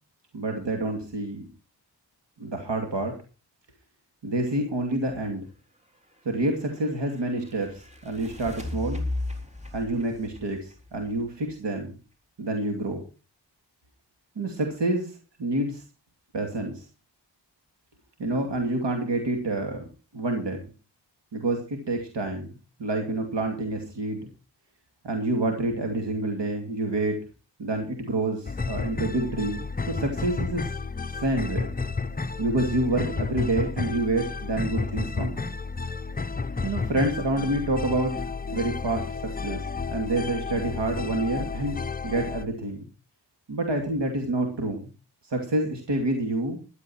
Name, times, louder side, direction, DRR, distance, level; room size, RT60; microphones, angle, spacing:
voice 1, 0.3-1.5 2.4-3.1 4.2-5.4 6.2-9.0 9.7-11.9 12.4-13.0 14.4-15.8 16.3-16.9 18.2-19.9 20.1-20.7 21.3-22.5 22.8-24.3 25.0-27.2 27.6-30.7 31.1-31.7 32.4-35.4 36.6-38.2 38.5-41.8 42.0-42.9 43.5-44.9 45.2-46.6, right 2 dB, 65° right, 3 dB, 2.6 m, -28 dB
sound 1, 6.0-11.8, left 2 dB, 15° right, 3.7 m, -37 dB
sound 2, 28.5-42.4, left 4 dB, 20° left, 0.7 m, -32 dB
14.0 x 11.5 x 4.5 m, 0.33 s
wide cardioid pair, 100°, 45 cm